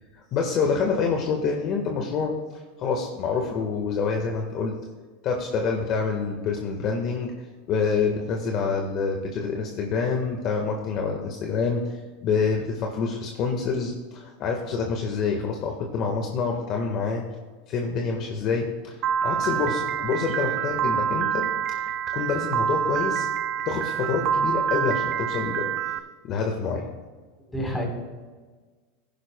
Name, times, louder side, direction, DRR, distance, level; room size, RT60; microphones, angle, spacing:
voice 1, 0.3-4.7 5.2-7.3 7.7-17.2 17.7-21.9 22.1-23.3 23.7-25.8 26.2-26.8, left 5 dB, 45° left, 1 dB, 1.4 m, -27 dB
Piano, 19.0-26.0, right 8 dB, 40° right, 0.6 m, -26 dB
voice 2, 27.5-27.9, equal, 5° left, -1 dB, 3.8 m, -30 dB
19.0 x 10.5 x 2.2 m, 1.4 s
supercardioid pair, 130°, 0 cm